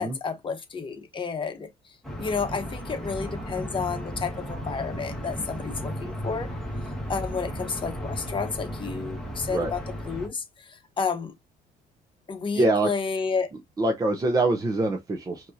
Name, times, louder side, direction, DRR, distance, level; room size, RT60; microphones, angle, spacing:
voice 1, 0.0-1.7 2.2-6.5 7.1-9.8 10.1-11.3 12.3-13.5, left 5 dB, 30° left, 1.1 m, -31 dB
sound 1, 2.0-10.3, equal, 5° left, 1.6 m, -34 dB
voice 2, 12.5-12.9 13.8-15.5, right 2 dB, 20° right, 0.7 m, -24 dB
5.1 x 2.8 x 2.7 m
cardioid pair, 110°, 17 cm